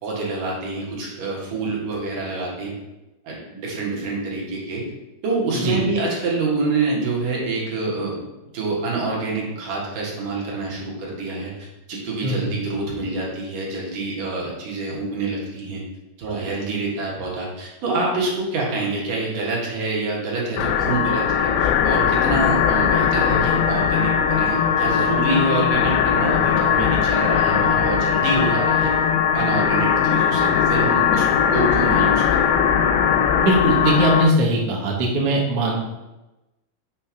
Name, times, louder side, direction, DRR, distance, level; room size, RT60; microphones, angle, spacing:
voice 1, 0.0-2.8 3.2-4.9 5.2-15.8 16.2-28.9 29.3-31.3 31.5-32.2, right 3 dB, 60° right, -4 dB, 2.8 m, -26 dB
voice 2, 12.2-12.6 33.4-35.8, right 1 dB, 90° right, -2 dB, 1.3 m, -20 dB
sound 1, 20.6-34.3, left 8 dB, 90° left, 2.8 m, -19 dB
7.0 x 3.4 x 5.7 m, 1.0 s
omnidirectional pair, 4.8 m